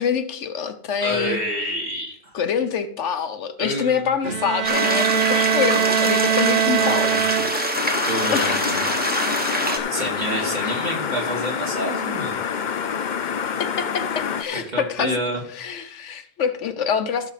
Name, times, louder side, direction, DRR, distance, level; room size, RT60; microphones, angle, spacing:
voice 1, 0.0-1.4 2.3-7.1 8.3-8.7 10.6-10.7 13.6-15.2 15.6-17.3, left 7 dB, 80° left, 9 dB, 1.1 m, -25 dB
voice 2, 1.0-2.3 3.6-4.1 6.8-7.2 8.1-8.7 9.9-12.3 14.5-15.4, right 1 dB, 40° right, -2 dB, 3.0 m, -28 dB
Bowed string instrument, 4.2-7.9, right 10 dB, 65° right, 0.9 m, -22 dB
sound 1, 4.6-9.8, equal, 10° right, 1.3 m, -24 dB
sound 2, 7.7-14.4, left 7 dB, 50° left, 0.6 m, -27 dB
15.5 x 6.4 x 4.1 m, 0.64 s
omnidirectional pair, 1.2 m